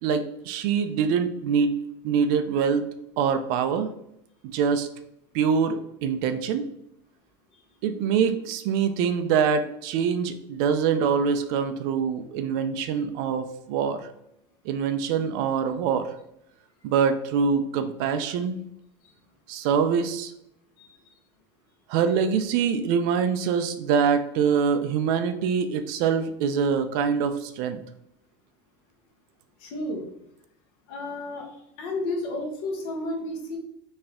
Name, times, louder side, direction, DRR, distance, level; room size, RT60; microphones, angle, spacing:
voice 1, 0.0-1.7 2.0-2.8 3.2-3.9 4.4-4.9 5.3-6.6 7.8-14.1 14.7-16.1 16.8-18.6 19.5-20.3 21.9-27.8, right 6 dB, 50° right, 10 dB, 0.4 m, -24 dB
voice 2, 29.6-30.0 30.9-31.5 31.8-33.6, left 2 dB, 55° left, 1 dB, 1.3 m, -31 dB
4.3 x 3.3 x 3.6 m, 0.77 s
cardioid pair, 175°, 14 cm